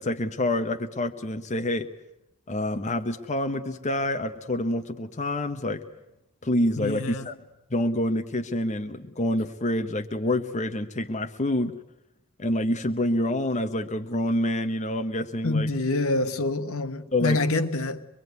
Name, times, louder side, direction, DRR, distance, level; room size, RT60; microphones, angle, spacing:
voice 1, 0.0-1.9 2.5-5.8 6.4-7.3 7.7-11.8 12.4-15.7 17.1-17.4, left 1 dB, 30° left, 1.0 m, -27 dB
voice 2, 6.8-7.3 15.4-18.1, left 2 dB, 65° left, 1.3 m, -26 dB
25.0 x 22.5 x 9.4 m
head